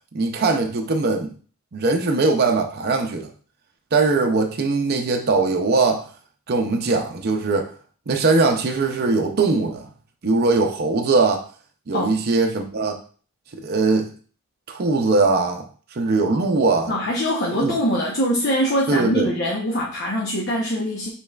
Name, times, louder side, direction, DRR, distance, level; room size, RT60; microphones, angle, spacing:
voice 1, 0.1-1.3 1.7-3.3 3.9-6.1 6.5-7.7 8.1-9.9 10.2-11.5 11.9-13.0 13.5-14.1 14.7-15.7 15.9-16.9 17.6-17.7 18.9-19.3, right 3 dB, 50° right, 4 dB, 0.5 m, -20 dB
voice 2, 16.9-21.1, equal, 55° left, -3 dB, 0.9 m, -23 dB
5.4 x 4.1 x 2.3 m, 0.41 s
head